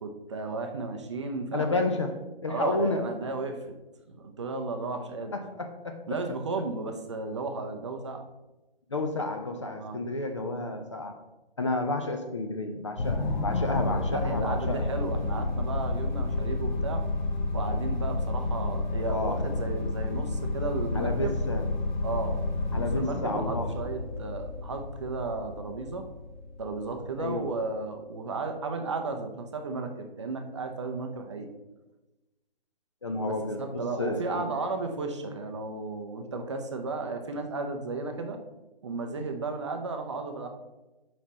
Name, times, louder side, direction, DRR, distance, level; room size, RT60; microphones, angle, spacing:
voice 1, 0.0-1.7 2.5-3.8 4.1-5.3 6.1-8.2 9.7-10.0 14.1-17.0 17.5-21.3 22.0-22.4 22.7-26.1 26.6-31.5 33.3-38.4 38.8-40.5, right 3 dB, 30° right, 5 dB, 0.5 m, -34 dB
voice 2, 1.5-3.1 5.3-6.0 8.9-11.2 11.6-14.9 19.1-19.5 20.9-21.7 22.7-23.7 27.2-27.6 33.0-34.5, left 2 dB, 30° left, 5 dB, 0.4 m, -31 dB
sound 1, 13.0-27.5, left 2 dB, 50° left, 1.1 m, -30 dB
5.7 x 4.9 x 4.1 m, 1.1 s
hypercardioid pair, 155°, 30 cm